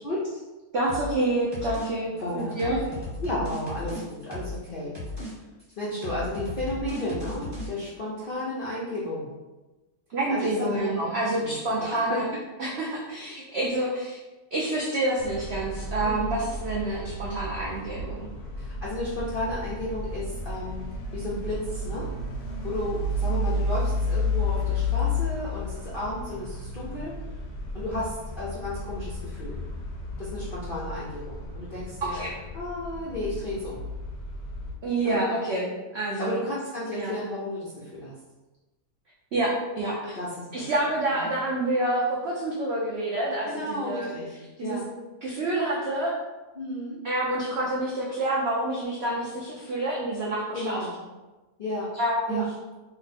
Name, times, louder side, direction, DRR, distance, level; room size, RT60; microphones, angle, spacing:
voice 1, 0.7-2.8 10.1-12.3 12.6-14.2 14.5-18.3 32.0-32.3 34.8-36.4 36.9-37.2 39.3-40.2 40.5-44.1 44.6-44.8 45.2-46.1 47.0-50.8 51.9-52.4, right 1 dB, 75° right, -4 dB, 0.5 m, -28 dB
sound 1, 0.9-1.2 1.5-1.9 2.2-4.7 4.9-5.3 5.6-7.7, left 2 dB, 20° right, 0.8 m, -36 dB
voice 2, 2.2-2.9 3.2-4.9 5.8-9.3 10.3-11.1 11.4-12.2 16.0-16.4 18.6-22.1 22.6-27.1 27.7-29.6 30.2-32.2 32.5-33.8 35.0-35.2 36.2-38.1 40.1-40.6 41.1-41.3 43.4-44.9 46.6-47.0 50.5-51.0 51.6-51.9 52.3-52.4, left 1 dB, 65° left, -8 dB, 0.5 m, -33 dB
sound 2, 15.2-34.8, left 2 dB, 85° left, 1.3 m, -32 dB
3.0 x 2.1 x 4.1 m, 1.1 s
omnidirectional pair, 1.8 m